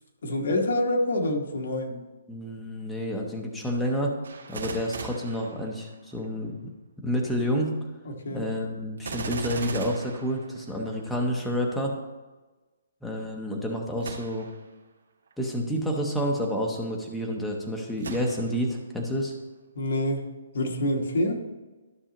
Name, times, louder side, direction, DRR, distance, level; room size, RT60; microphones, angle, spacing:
voice 1, 0.2-1.9 8.0-8.5 19.7-20.3 20.5-21.4, left 1 dB, 50° left, 1 dB, 1.5 m, -26 dB
voice 2, 1.9-4.1 4.5-6.7 7.0-7.7 8.3-11.9 13.0-14.5 15.4-19.3, equal, ahead, -2 dB, 0.7 m, -29 dB
Gunshot gunfire, 4.2-6.2 9.0-11.1 14.0-14.6 15.3-15.4 18.0-18.8 19.3-19.4, right 4 dB, 80° right, 1.4 m, -38 dB
12.5 x 6.2 x 3.0 m, 1.2 s
hypercardioid pair, 180°, 0 cm